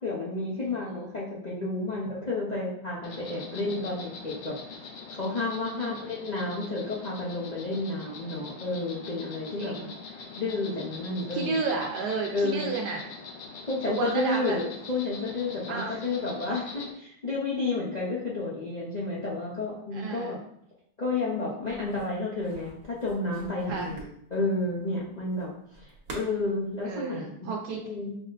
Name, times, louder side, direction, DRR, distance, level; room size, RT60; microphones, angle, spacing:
voice 1, 0.0-4.5 5.1-9.9 10.4-11.6 12.3-12.7 13.7-20.4 21.0-27.5 27.8-28.2, left 2 dB, 40° left, -6 dB, 0.6 m, -31 dB
Insect, 3.0-16.9, left 4 dB, 70° left, 1.0 m, -43 dB
voice 2, 9.5-9.9 11.3-13.0 13.9-14.6 15.7-16.0 16.7-16.8 19.9-20.4 23.7-23.9 26.8-27.8, right 4 dB, 80° right, 0 dB, 1.2 m, -32 dB
sound 1, 21.6-26.9, right 2 dB, 60° right, 1.4 m, -46 dB
5.6 x 2.1 x 3.9 m, 0.69 s
omnidirectional pair, 1.8 m